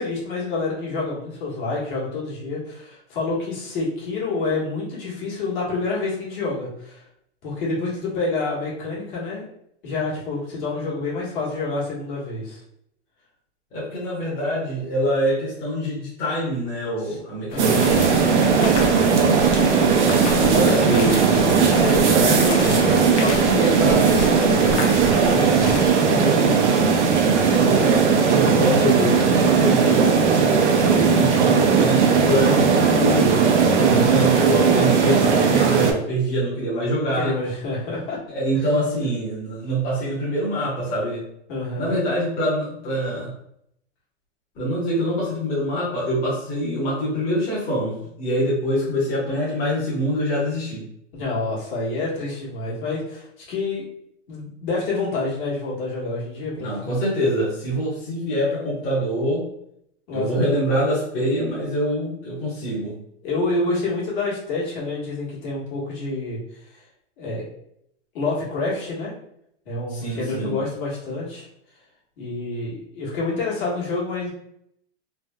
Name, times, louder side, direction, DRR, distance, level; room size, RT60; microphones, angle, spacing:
voice 1, 0.0-7.0 7.4-9.5 9.8-12.6 17.0-17.2 17.5-17.9 20.3-26.8 33.8-34.1 37.1-38.2 41.5-41.9 51.1-53.8 54.3-56.8 60.1-60.5 63.2-66.4 66.7-66.8 67.2-67.4 68.1-69.1 69.6-71.5 72.2-74.3, left 3 dB, 50° left, -5 dB, 1.5 m, -28 dB
voice 2, 13.7-18.6 20.4-21.1 27.5-30.3 30.8-33.4 33.9-37.3 38.3-41.3 41.8-43.3 44.5-50.8 56.6-59.5 60.1-62.9 69.9-70.6, equal, 25° left, -8 dB, 1.0 m, -25 dB
sound 1, 17.5-25.9, left 3 dB, 85° left, 0.9 m, -32 dB
sound 2, 17.6-35.9, right 5 dB, 80° right, 0.7 m, -18 dB
3.4 x 2.6 x 2.2 m, 0.73 s
supercardioid pair, 145°, 34 cm